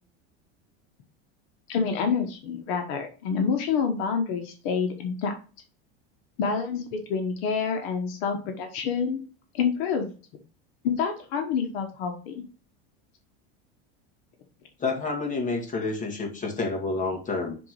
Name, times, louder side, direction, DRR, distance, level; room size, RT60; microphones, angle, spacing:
voice 1, 1.7-5.3 6.4-9.2 9.5-10.1 10.8-12.4, left 6 dB, 70° left, 5 dB, 1.3 m, -27 dB
voice 2, 14.8-17.6, left 3 dB, 25° left, 1 dB, 2.0 m, -29 dB
6.1 x 3.9 x 4.7 m, 0.37 s
supercardioid pair, 130°, 32 cm